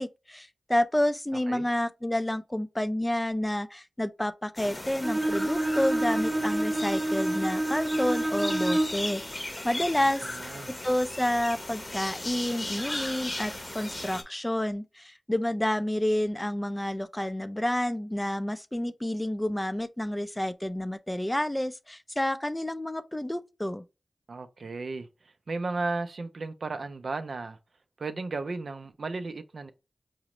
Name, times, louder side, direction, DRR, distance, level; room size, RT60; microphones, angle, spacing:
voice 1, 0.0-10.3 10.8-23.8, left 1 dB, 15° left, 0.3 m, -29 dB
sound 1, 4.6-14.2, left 1 dB, 30° left, 0.7 m, -37 dB
Bowed string instrument, 5.0-9.1, right 1 dB, 25° right, 0.6 m, -28 dB
voice 2, 10.3-10.7 24.3-25.1 25.5-27.6 28.0-29.7, right 3 dB, 75° right, 0.3 m, -34 dB
4.8 x 2.0 x 2.9 m
cardioid pair, 45°, 0 cm